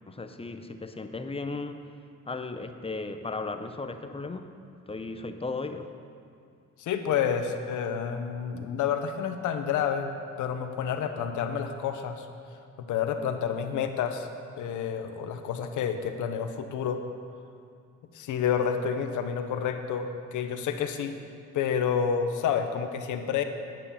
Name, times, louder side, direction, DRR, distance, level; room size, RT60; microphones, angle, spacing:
voice 1, 0.1-1.9 2.3-4.5 4.9-5.9, left 3 dB, 20° left, 8 dB, 0.7 m, -36 dB
voice 2, 6.8-10.1 10.4-12.3 12.8-14.3 14.6-17.0 18.1-21.2 21.5-23.4, left 7 dB, 80° left, 7 dB, 0.9 m, -29 dB
9.8 x 8.9 x 5.6 m, 2.4 s
cardioid pair, 90°, 30 cm